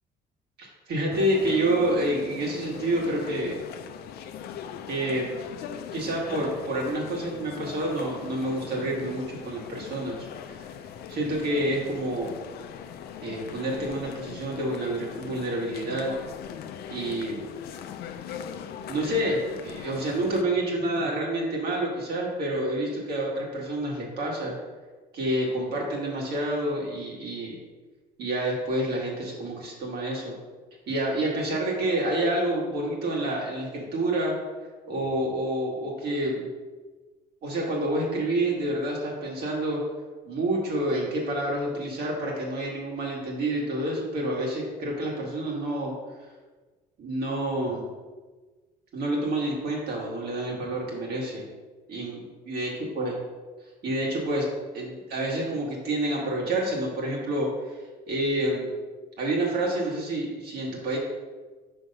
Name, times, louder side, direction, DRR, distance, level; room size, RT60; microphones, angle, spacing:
voice 1, 0.6-3.6 4.9-5.4 5.9-10.2 10.5-10.6 11.1-12.4 13.2-16.1 16.9-17.5 18.9-24.6 25.1-27.6 28.2-30.3 30.9-34.3 34.9-36.5 37.4-39.8 40.3-45.9 47.0-47.9 48.9-51.4 51.9-53.1 53.8-54.5 54.7-57.8 58.1-58.7 59.2-61.0, right 1 dB, 65° right, -2 dB, 1.9 m, -28 dB
sound 1, 1.1-20.4, left 8 dB, 65° left, 0.5 m, -40 dB
5.5 x 3.4 x 5.3 m, 1.3 s
cardioid pair, 110°, 17 cm